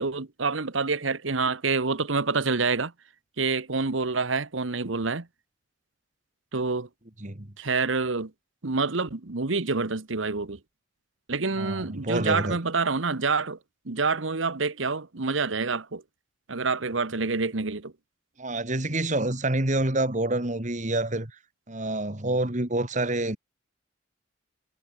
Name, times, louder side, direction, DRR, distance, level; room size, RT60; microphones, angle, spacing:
voice 1, 0.0-2.9 3.4-5.3 6.5-6.9 7.6-8.3 8.6-10.6 11.3-13.6 13.8-16.0 16.5-17.9, right 4 dB, 80° right, 1.2 m, -27 dB
voice 2, 7.2-7.5 11.6-12.6 18.4-21.3 21.7-23.4, right 2 dB, 40° right, 2.4 m, -27 dB
head